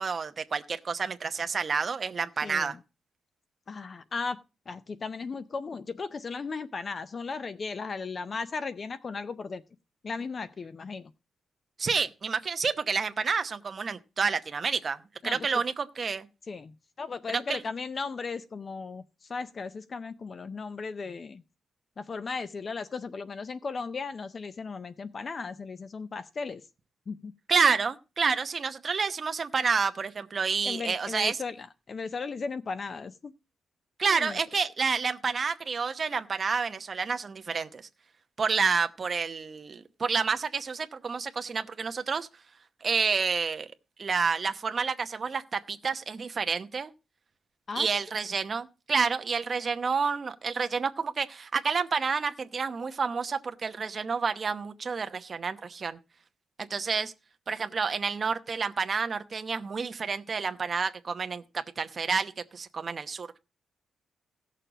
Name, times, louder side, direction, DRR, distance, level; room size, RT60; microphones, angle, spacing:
voice 1, 0.0-2.7 11.8-16.3 17.3-17.6 27.5-31.4 34.0-37.8 38.4-42.3 42.8-43.7 44.0-46.9 47.8-56.0 56.7-57.1 57.5-63.4, right 5 dB, 35° right, 0.9 m, -29 dB
voice 2, 2.4-2.8 3.7-4.4 4.7-9.6 10.0-11.1 15.2-15.6 16.4-21.4 22.0-26.6 27.1-27.3 30.6-33.3 34.1-34.4 47.7-48.0, left 4 dB, 35° left, 0.5 m, -36 dB
16.0 x 6.7 x 5.0 m
wide cardioid pair, 160°, 0 cm